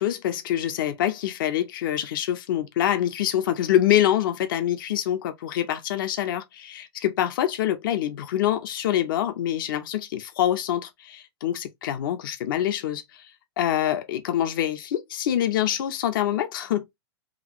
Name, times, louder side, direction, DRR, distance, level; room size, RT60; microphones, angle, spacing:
voice 1, 0.0-13.3 13.6-16.9, left 11 dB, 50° left, 0.7 m, -25 dB
2.9 x 2.5 x 2.9 m
supercardioid pair, 170°, 15 cm